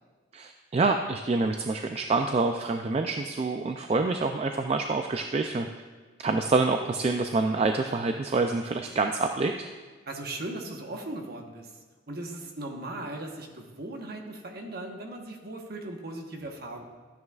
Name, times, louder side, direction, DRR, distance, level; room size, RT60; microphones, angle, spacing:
voice 1, 0.3-5.7 6.2-9.7, right 3 dB, 30° right, 5 dB, 0.3 m, -27 dB
voice 2, 10.1-11.7 12.1-16.8, right 2 dB, 50° right, 2 dB, 1.1 m, -38 dB
13.0 x 9.5 x 2.4 m, 1.4 s
head